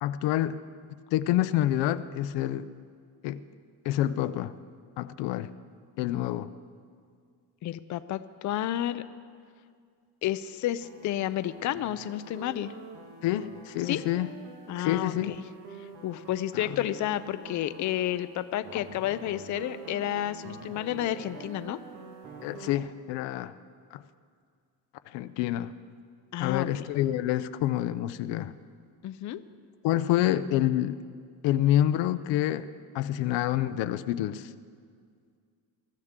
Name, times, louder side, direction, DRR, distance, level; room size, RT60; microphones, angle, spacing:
voice 1, 0.0-0.6 1.1-2.7 3.2-3.4 3.8-4.5 5.0-5.5 6.0-6.5 13.2-14.3 14.8-15.4 16.5-16.8 22.4-23.6 23.9-24.0 25.1-25.7 26.4-28.5 29.8-31.0 31.4-32.7 32.9-34.5, left 13 dB, 85° left, 12 dB, 0.7 m, -27 dB
voice 2, 7.6-9.0 10.2-12.7 13.8-14.0 14.7-15.4 15.8-21.8 26.3-26.8 29.0-29.4, left 12 dB, 45° left, 12 dB, 0.5 m, -31 dB
sound 1, 10.8-22.7, right 4 dB, 75° right, 1.9 m, -46 dB
22.5 x 13.5 x 3.7 m, 2.1 s
cardioid pair, 140°, 42 cm